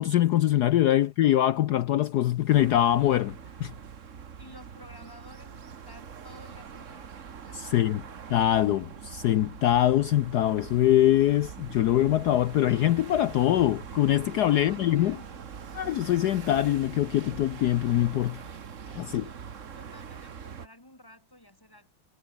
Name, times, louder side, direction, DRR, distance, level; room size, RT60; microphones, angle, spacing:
voice 1, 0.0-3.7 7.5-8.0 8.3-15.2 15.7-18.4 19.0-19.2, left 13 dB, 75° left, 0.9 m, -23 dB
sound 1, 2.5-20.7, right 7 dB, 40° right, 1.4 m, -43 dB
voice 2, 4.4-8.2 14.3-16.1 18.8-21.9, left 1 dB, 10° left, 6.9 m, -53 dB
omnidirectional pair, 2.4 m